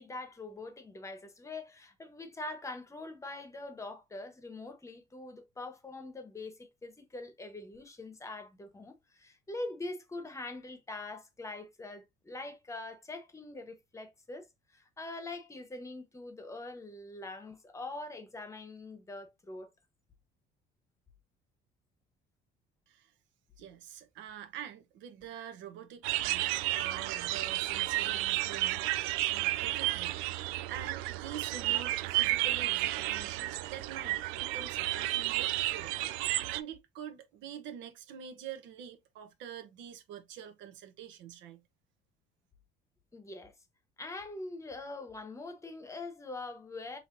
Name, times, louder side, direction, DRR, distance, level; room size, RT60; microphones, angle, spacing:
voice 1, 0.0-19.7 43.1-43.5 44.0-47.0, left 2 dB, 15° left, 1.0 m, -43 dB
voice 2, 23.6-30.2 30.7-41.6, right 9 dB, 70° right, 1.0 m, -46 dB
sound 1, 26.0-36.6, right 17 dB, 90° right, 0.4 m, -32 dB
5.6 x 3.1 x 2.6 m
cardioid pair, 125°, 20 cm